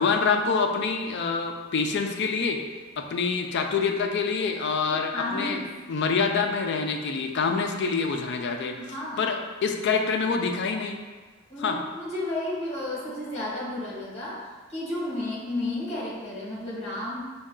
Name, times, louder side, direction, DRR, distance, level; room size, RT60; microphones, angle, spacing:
voice 1, 0.0-2.6 3.0-11.0 11.6-11.8, left 5 dB, 60° left, 4 dB, 0.4 m, -26 dB
voice 2, 4.8-5.7 8.6-9.3 11.5-17.2, left 1 dB, 35° left, -6 dB, 1.4 m, -32 dB
5.3 x 2.3 x 3.6 m, 1.4 s
head